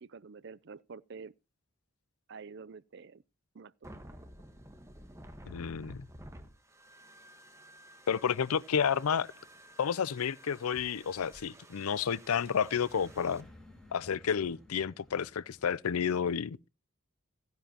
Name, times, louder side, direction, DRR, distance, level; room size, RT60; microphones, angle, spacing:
voice 1, 0.0-1.3 2.3-3.2 3.5-3.9, right 5 dB, 55° right, 0.5 m, -48 dB
sound 1, 3.8-13.4, right 1 dB, 15° right, 1.3 m, -53 dB
voice 2, 5.5-6.0 8.1-9.3 9.8-13.5 13.9-16.7, left 7 dB, 90° left, 0.5 m, -31 dB
sound 2, 9.4-15.8, left 1 dB, 5° left, 3.5 m, -57 dB
15.5 x 10.5 x 2.9 m
head